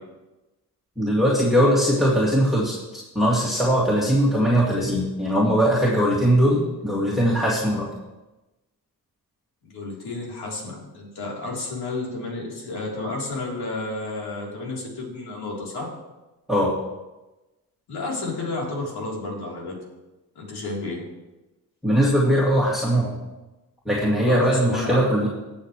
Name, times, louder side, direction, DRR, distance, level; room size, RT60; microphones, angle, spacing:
voice 1, 1.0-7.9 16.5-16.7 21.8-23.2 23.9-25.3, equal, ahead, -7 dB, 2.5 m, -20 dB
voice 2, 9.6-15.9 17.9-19.8 20.4-21.1 24.2-25.0, left 2 dB, 80° left, -3 dB, 3.8 m, -31 dB
19.5 x 7.2 x 3.3 m, 1.1 s
cardioid pair, 80°, 38 cm